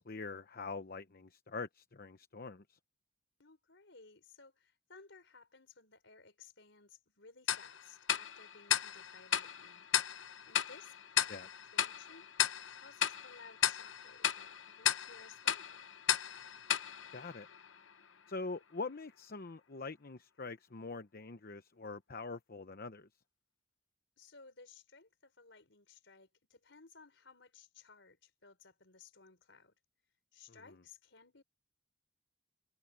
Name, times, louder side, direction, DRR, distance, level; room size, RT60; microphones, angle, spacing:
voice 1, 0.0-2.8 11.3-11.5 17.1-17.5 18.3-23.1 30.5-30.8, left 3 dB, 50° left, 0.9 m, -44 dB
voice 2, 3.4-9.9 10.5-11.3 11.7-12.3 12.7-15.8 24.2-29.7 30.3-31.4, left 4 dB, 70° left, 5.2 m, -59 dB
Tick-tock, 7.5-17.9, left 10 dB, 85° left, 0.9 m, -35 dB
head